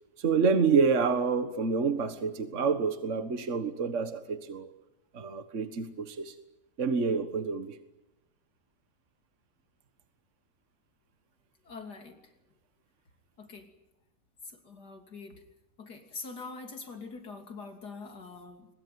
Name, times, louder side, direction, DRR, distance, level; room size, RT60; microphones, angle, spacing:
voice 1, 0.2-4.7 5.1-6.4 6.8-7.8, right 5 dB, 50° right, 9 dB, 1.8 m, -28 dB
voice 2, 11.6-12.3 13.4-13.7 14.5-15.4 15.8-18.7, left 4 dB, 75° left, 4 dB, 3.6 m, -44 dB
23.0 x 22.0 x 9.5 m, 0.94 s
omnidirectional pair, 1.7 m